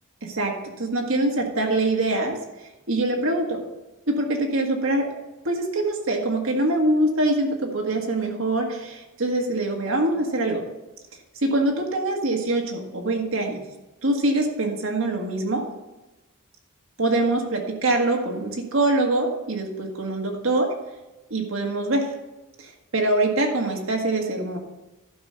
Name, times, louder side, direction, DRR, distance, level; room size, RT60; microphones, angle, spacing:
voice 1, 0.2-2.4 2.9-3.6 4.1-5.1 5.5-10.6 11.4-13.6 14.0-15.6 17.0-20.7 21.3-22.1 22.6-24.6, right 2 dB, 65° right, 1 dB, 1.7 m, -24 dB
12.0 x 5.4 x 5.6 m, 1.1 s
head